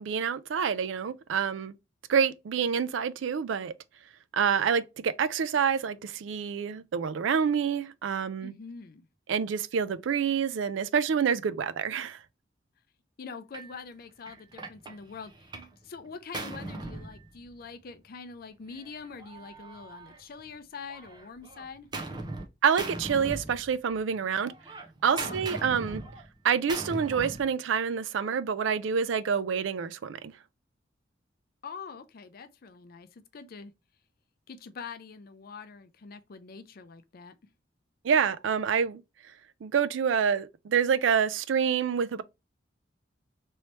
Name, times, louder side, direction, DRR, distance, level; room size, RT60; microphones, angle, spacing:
voice 1, 0.0-1.7 2.1-3.7 4.3-8.5 9.3-12.2 22.6-24.5 25.0-26.0 26.4-30.3 38.0-39.0 39.6-42.2, right 7 dB, 75° right, 0.4 m, -27 dB
voice 2, 8.4-9.1 13.2-15.5 15.8-21.9 25.1-25.7 31.6-33.7 34.5-37.4, left 5 dB, 50° left, 0.4 m, -44 dB
Gunshot gunfire, 13.5-13.7 14.3-15.8 16.0-17.8 18.7-20.5 20.9-22.5 22.8-24.0 24.3-27.5, right 2 dB, 25° right, 0.6 m, -40 dB
3.1 x 2.9 x 3.0 m
head